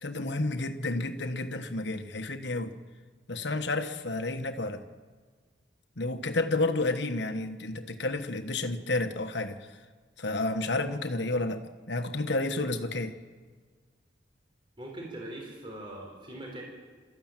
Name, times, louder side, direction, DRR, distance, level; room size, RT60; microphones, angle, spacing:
voice 1, 0.0-2.7 3.3-4.8 6.0-9.6 10.2-13.1, left 2 dB, 70° left, 7 dB, 1.4 m, -31 dB
voice 2, 14.8-16.6, right 1 dB, 25° right, -1 dB, 4.1 m, -41 dB
25.5 x 14.0 x 9.1 m, 1.5 s
head